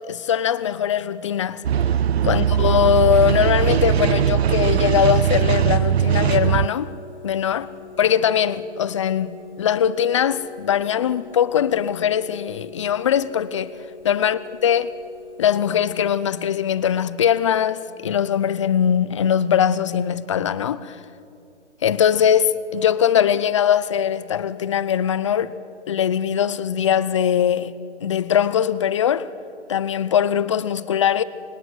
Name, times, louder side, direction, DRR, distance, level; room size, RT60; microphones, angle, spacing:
voice 1, 0.1-1.6 2.2-6.9 7.2-7.7 8.0-13.7 14.0-14.9 15.4-21.0 21.8-25.6 25.9-27.7 28.0-29.3 29.7-31.2, left 9 dB, 25° left, 0.6 m, -21 dB
sound 1, 1.6-6.7, right 9 dB, 60° right, 0.6 m, -20 dB
sound 2, 5.3-16.1, left 5 dB, 80° left, 5.8 m, -43 dB
27.0 x 23.0 x 9.4 m
hypercardioid pair, 155°, 35 cm